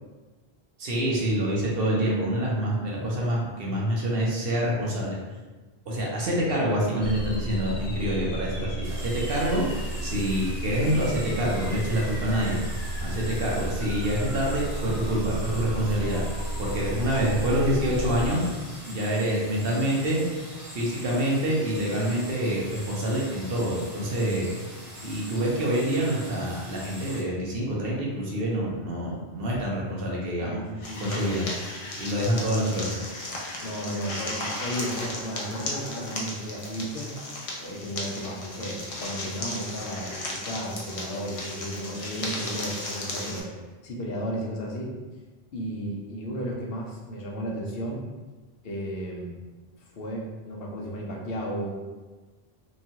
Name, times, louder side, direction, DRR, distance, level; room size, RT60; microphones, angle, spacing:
voice 1, 0.8-5.2 5.9-12.7 13.0-16.2 16.6-18.4 18.9-20.2 20.7-24.5 25.0-30.6 31.0-31.4 32.0-33.0, equal, 65° right, -4 dB, 0.9 m, -26 dB
sound 1, 7.0-18.3, right 2 dB, 90° left, 1.1 m, -32 dB
sound 2, 8.8-27.2, equal, 40° right, 1.0 m, -43 dB
voice 2, 30.4-31.6 33.6-37.1 37.6-43.5 43.8-44.9 45.5-48.0 48.6-49.3 49.9-51.7, equal, 70° left, -2 dB, 0.8 m, -34 dB
sound 3, 30.8-43.4, left 1 dB, 45° left, 0.5 m, -35 dB
3.0 x 2.3 x 2.7 m, 1.3 s
omnidirectional pair, 1.0 m